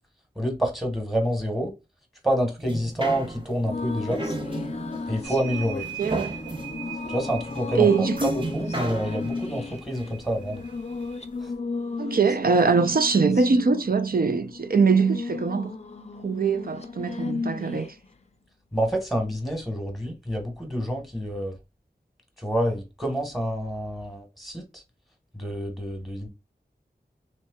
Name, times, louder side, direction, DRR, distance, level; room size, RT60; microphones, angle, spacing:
voice 1, 0.3-1.7 2.2-4.2 5.1-5.8 7.1-7.9 8.2-10.6 11.4-11.5 18.7-21.5 22.4-24.8 25.3-26.3, equal, ahead, 1.3 m, -28 dB
sound 1, 2.6-11.1 11.5-11.6, right 2 dB, 30° right, 0.9 m, -35 dB
sound 2, 3.6-18.1, left 4 dB, 40° left, 0.5 m, -35 dB
sound 3, 5.2-11.2, right 11 dB, 90° right, 0.9 m, -42 dB
voice 2, 6.0-6.3 7.8-8.3 12.0-15.7 16.2-18.0, right 4 dB, 60° right, 0.5 m, -22 dB
3.3 x 3.0 x 2.3 m
wide cardioid pair, 50°, 18 cm